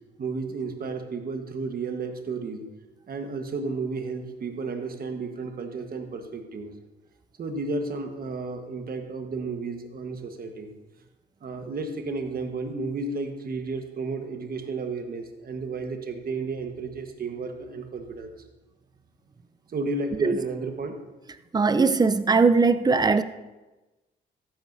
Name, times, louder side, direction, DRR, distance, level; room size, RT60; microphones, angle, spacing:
voice 1, 0.2-2.6 3.1-6.7 7.4-10.7 11.4-18.3 19.7-21.0, right 3 dB, 50° right, 5 dB, 1.4 m, -32 dB
voice 2, 21.5-23.2, right 4 dB, 20° right, 13 dB, 0.5 m, -20 dB
14.0 x 11.0 x 2.7 m, 1.1 s
cardioid pair, 90°, 20 cm